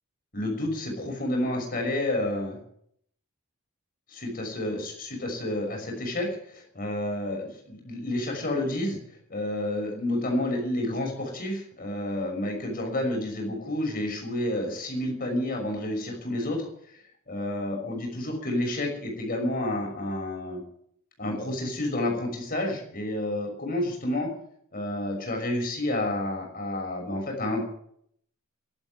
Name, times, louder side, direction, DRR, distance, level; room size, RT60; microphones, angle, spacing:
voice 1, 0.3-2.6 4.1-9.0 9.3-16.7 17.3-20.6 21.2-24.3 24.7-27.6, left 1 dB, 40° left, 2 dB, 6.1 m, -30 dB
12.5 x 11.5 x 9.4 m, 0.67 s
head